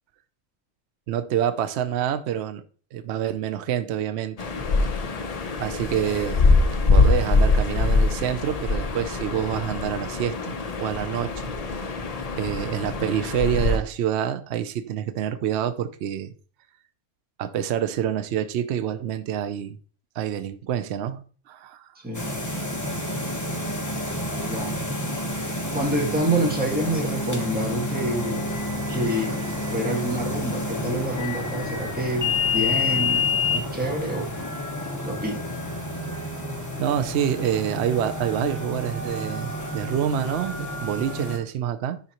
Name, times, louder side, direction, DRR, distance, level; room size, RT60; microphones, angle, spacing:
voice 1, 1.1-2.6 2.9-4.4 5.6-6.4 6.9-11.5 12.4-16.3 17.4-19.8 20.2-21.9 36.8-42.0, right 10 dB, 65° right, 0.8 m, -27 dB
sound 1, 4.4-13.8, left 3 dB, 40° left, 0.6 m, -23 dB
voice 2, 21.9-22.3 24.4-24.8 25.7-28.4 28.9-29.4 29.7-34.3 34.9-35.4, right 1 dB, 5° right, 1.6 m, -27 dB
sound 2, 22.1-41.4, left 2 dB, 15° left, 1.0 m, -29 dB
11.0 x 3.9 x 2.9 m
omnidirectional pair, 1.3 m